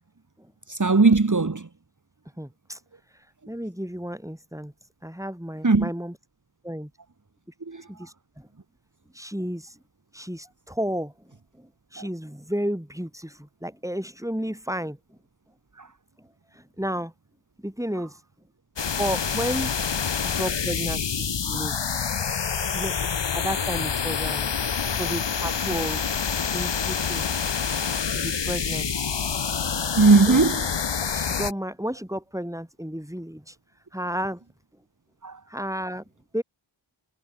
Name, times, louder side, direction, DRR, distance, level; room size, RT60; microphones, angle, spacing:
voice 1, 0.7-1.7 5.6-5.9 7.7-7.8 15.8-15.9 30.0-30.7 35.2-35.4, right 3 dB, 40° right, 1.6 m, -18 dB
voice 2, 2.4-2.8 3.5-4.7 5.0-6.1 6.6-6.9 7.9-8.5 9.1-9.7 10.1-11.1 11.5-15.2 16.5-17.1 17.6-18.2 19.0-19.7 20.1-21.8 22.7-22.9 23.3-24.5 25.0-26.0 26.4-27.3 28.1-29.1 30.3-30.4 31.1-33.5 33.9-34.4 35.5-36.0 36.3-36.4, equal, 5° right, 7.8 m, -32 dB
sound 1, 18.8-31.5, left 6 dB, 65° left, 1.0 m, -27 dB
wide cardioid pair, 45°, 46 cm